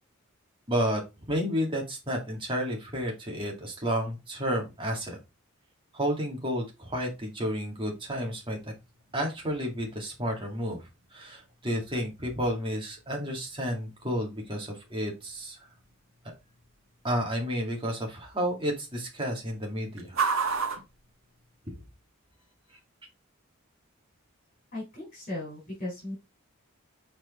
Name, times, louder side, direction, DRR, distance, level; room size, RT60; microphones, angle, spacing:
voice 1, 0.7-1.0 1.3-5.2 5.9-8.7 9.1-15.6 16.2-16.3 17.0-20.2 21.7-21.8, equal, 25° right, 0 dB, 2.1 m, -31 dB
sound 1, 7.2-22.0, right 5 dB, 75° right, 1.5 m, -40 dB
voice 2, 24.7-26.1, left 1 dB, 40° left, -4 dB, 3.4 m, -37 dB
6.0 x 4.4 x 3.6 m, 0.24 s
head